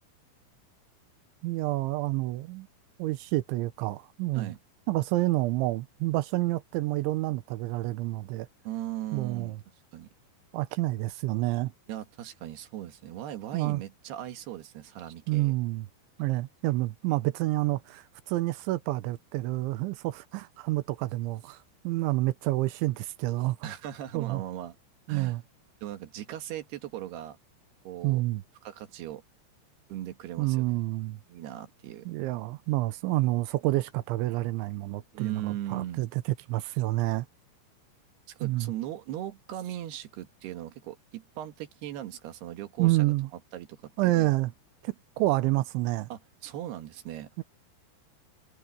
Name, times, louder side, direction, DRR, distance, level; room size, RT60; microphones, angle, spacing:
voice 1, 1.4-2.7 3.0-4.5 4.9-8.5 9.1-9.6 10.5-11.7 13.5-13.8 15.3-15.9 16.2-21.6 21.8-23.7 24.1-24.4 25.1-25.4 28.0-28.4 30.4-31.2 32.1-36.2 36.5-37.3 38.4-38.7 42.8-43.3 44.0-44.5 44.8-46.1 47.4-47.5, right 18 dB, 90° right, 3.3 m, -28 dB
voice 2, 8.7-9.6 9.9-10.1 11.9-15.5 23.6-24.8 25.1-25.4 25.8-27.4 27.9-28.2 28.6-29.2 29.9-30.7 31.3-32.1 35.1-36.1 38.3-43.1 43.5-44.3 46.1-47.3, right 12 dB, 65° right, 3.4 m, -38 dB
omnidirectional pair, 5.2 m